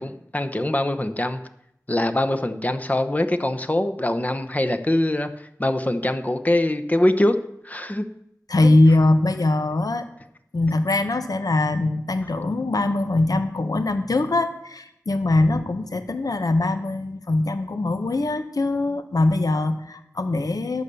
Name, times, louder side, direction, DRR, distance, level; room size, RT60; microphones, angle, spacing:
voice 1, 0.0-1.4 1.9-7.4 7.6-8.1, left 1 dB, 25° left, 8 dB, 0.9 m, -23 dB
voice 2, 8.5-10.1 10.5-20.8, left 2 dB, 90° left, 10 dB, 0.8 m, -22 dB
11.5 x 6.9 x 6.9 m, 0.77 s
wide cardioid pair, 55°, 6 cm